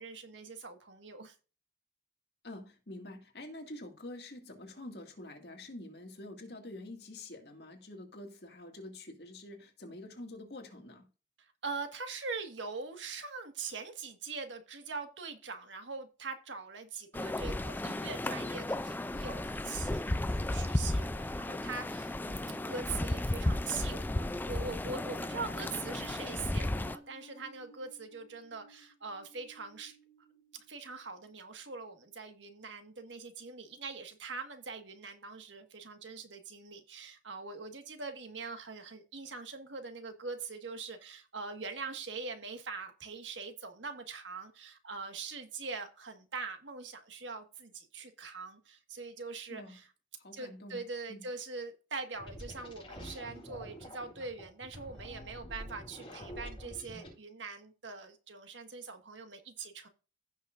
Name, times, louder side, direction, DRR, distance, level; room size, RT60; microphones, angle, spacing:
voice 1, 0.0-1.3 11.4-30.0 30.5-49.9 50.3-59.9, right 4 dB, 80° right, 1.6 m, -43 dB
voice 2, 2.4-11.1 49.5-49.8 50.2-50.8 51.1-51.2, left 1 dB, 60° left, 2.1 m, -47 dB
sound 1, 17.1-27.0, left 1 dB, 10° left, 0.3 m, -34 dB
sound 2, 24.5-30.9, left 3 dB, 30° right, 3.2 m, -55 dB
sound 3, 52.1-57.1, equal, 25° left, 5.5 m, -47 dB
15.5 x 6.3 x 2.5 m
head